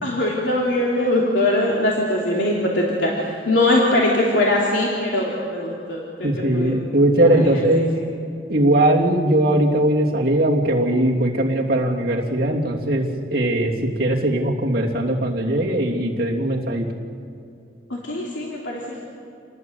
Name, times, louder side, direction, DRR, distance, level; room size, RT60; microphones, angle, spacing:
voice 1, 0.0-6.7 7.1-8.1 18.0-19.0, left 1 dB, 85° left, -3 dB, 3.2 m, -22 dB
voice 2, 6.2-7.9 8.5-13.0 13.3-16.9, right 1 dB, 50° right, -2 dB, 3.0 m, -19 dB
28.5 x 20.0 x 8.0 m, 2.5 s
head